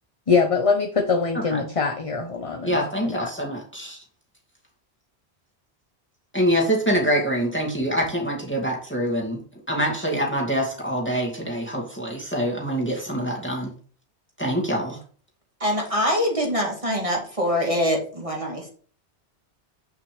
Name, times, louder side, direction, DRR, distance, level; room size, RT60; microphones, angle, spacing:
voice 1, 0.3-3.3, left 5 dB, 35° left, 4 dB, 0.9 m, -23 dB
voice 2, 2.6-4.0 6.3-9.4 9.7-13.7 14.4-15.0, equal, 10° left, -2 dB, 2.3 m, -25 dB
voice 3, 15.6-18.7, equal, 30° right, 0 dB, 2.0 m, -24 dB
9.1 x 6.3 x 3.4 m, 0.43 s
omnidirectional pair, 1.1 m